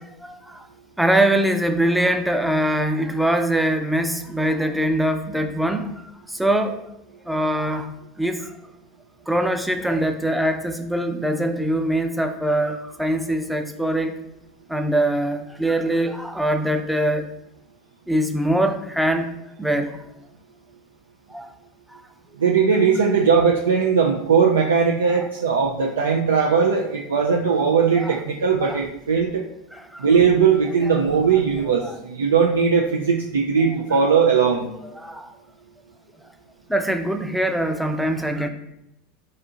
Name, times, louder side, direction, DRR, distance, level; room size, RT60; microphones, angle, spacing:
voice 1, 0.2-0.7 1.0-6.9 7.3-8.5 9.3-14.1 14.7-17.3 18.1-19.3 19.6-20.0 21.3-21.5 21.9-22.0 25.1-25.3 28.0-28.2 28.6-28.8 29.7-30.1 31.8-32.0 33.9-34.0 34.9-35.3 36.7-38.5, right 1 dB, 5° right, 6 dB, 0.5 m, -23 dB
voice 2, 22.4-29.4 30.0-34.7, right 6 dB, 85° right, 0 dB, 0.4 m, -19 dB
4.2 x 2.7 x 3.7 m, 0.87 s
hypercardioid pair, 85°, 0 cm